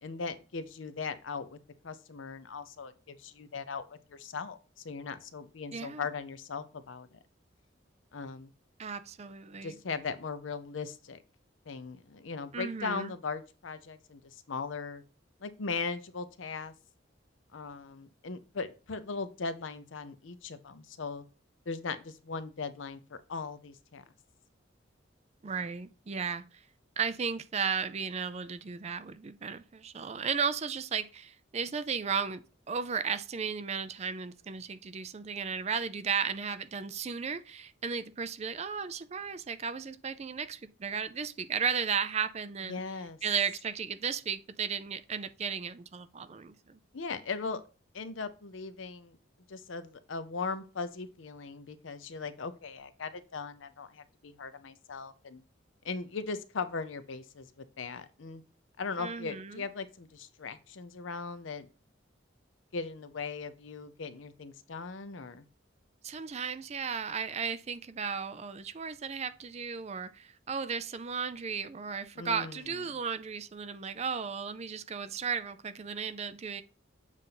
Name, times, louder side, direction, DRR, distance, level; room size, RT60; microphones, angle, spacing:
voice 1, 0.0-1.6 1.8-7.1 8.1-8.5 9.6-11.2 11.7-15.0 15.4-16.7 17.5-21.2 21.7-24.0 42.7-43.2 46.9-47.6 47.9-49.2 49.5-55.4 55.8-58.4 58.8-61.7 62.7-65.5 72.2-72.8, left 4 dB, 80° left, 0.6 m, -39 dB
voice 2, 5.7-6.1 8.8-9.8 12.5-13.1 25.4-26.4 27.0-42.8 43.2-46.8 59.0-59.7 66.0-76.6, right 6 dB, 35° right, 0.4 m, -35 dB
7.4 x 2.6 x 5.7 m
head